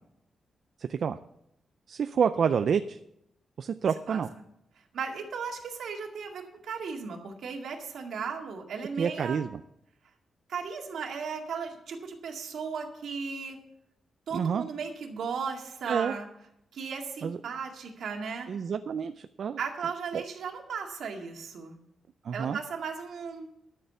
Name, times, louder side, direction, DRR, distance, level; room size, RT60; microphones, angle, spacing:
voice 1, 1.9-3.0 3.6-4.3 9.0-9.6 14.3-14.6 15.9-16.1 17.2-17.4 18.5-19.6 20.1-20.2 22.2-22.6, right 7 dB, 50° right, 10 dB, 0.4 m, -28 dB
voice 2, 4.9-9.4 10.5-13.6 14.3-16.3 16.7-18.5 19.6-21.8 22.3-23.5, right 5 dB, 70° right, 2 dB, 2.0 m, -36 dB
12.5 x 6.7 x 6.9 m, 0.79 s
wide cardioid pair, 175°, 0 cm